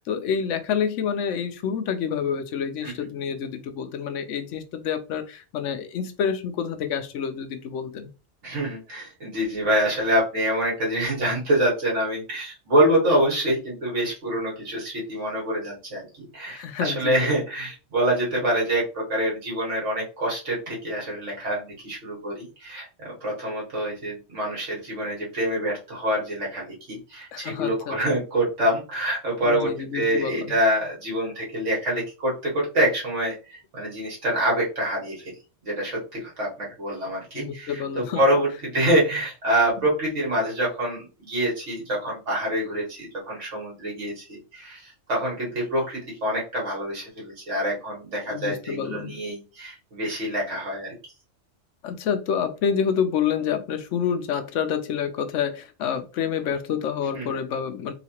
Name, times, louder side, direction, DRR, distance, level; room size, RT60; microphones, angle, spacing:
voice 1, 0.0-8.1 16.5-17.3 27.3-28.0 29.4-30.5 37.3-38.2 48.3-49.2 51.8-57.9, left 7 dB, 80° left, 9 dB, 0.9 m, -28 dB
voice 2, 8.4-35.3 35.6-50.9 57.1-57.3, right 1 dB, 75° right, -3 dB, 2.0 m, -26 dB
4.0 x 2.4 x 2.9 m, 0.32 s
omnidirectional pair, 1.3 m